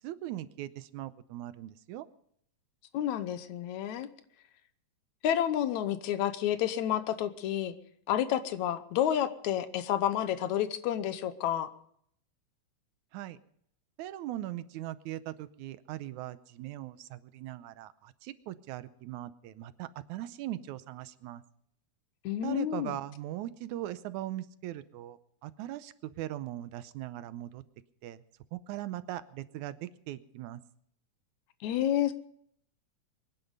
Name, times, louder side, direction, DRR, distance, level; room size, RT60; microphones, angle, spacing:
voice 1, 0.0-2.1 13.1-13.4 14.0-21.4 22.4-27.6 28.0-28.2 28.5-30.6, right 14 dB, 85° right, 14 dB, 2.2 m, -40 dB
voice 2, 2.9-4.1 5.2-7.8 8.1-11.7 22.2-22.9 31.6-32.1, left 11 dB, 80° left, 12 dB, 2.2 m, -30 dB
23.5 x 10.5 x 5.3 m, 0.67 s
omnidirectional pair, 3.3 m